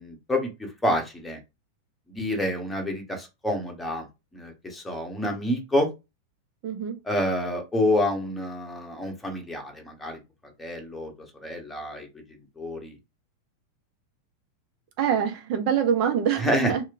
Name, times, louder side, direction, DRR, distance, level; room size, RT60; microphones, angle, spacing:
voice 1, 0.0-1.4 2.1-4.1 4.3-5.9 7.0-10.2 10.6-11.1 11.4-12.1 12.6-12.9 16.4-16.7, left 1 dB, 10° left, 1.0 m, -28 dB
voice 2, 6.6-6.9 15.0-16.8, right 8 dB, 45° right, 0.5 m, -24 dB
3.0 x 2.1 x 2.5 m
figure-of-eight pair, 90°, 0 cm